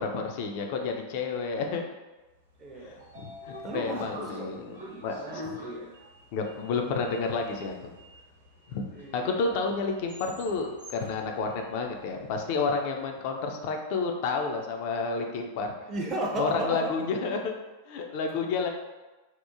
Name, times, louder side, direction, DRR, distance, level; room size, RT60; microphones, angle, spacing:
voice 1, 0.0-1.8 3.2-5.6 6.3-7.9 8.7-8.9 9.1-15.7 16.4-17.5 17.9-18.7, left 4 dB, 45° left, 3 dB, 0.3 m, -30 dB
Sliding door, 2.5-12.7, equal, 80° right, 0.8 m, -45 dB
voice 2, 2.6-3.0 3.6-4.5 4.8-6.1 9.0-9.4 15.9-16.9, right 1 dB, 25° right, -1 dB, 0.4 m, -35 dB
2.8 x 2.1 x 2.3 m, 1.1 s
figure-of-eight pair, 90°, 0 cm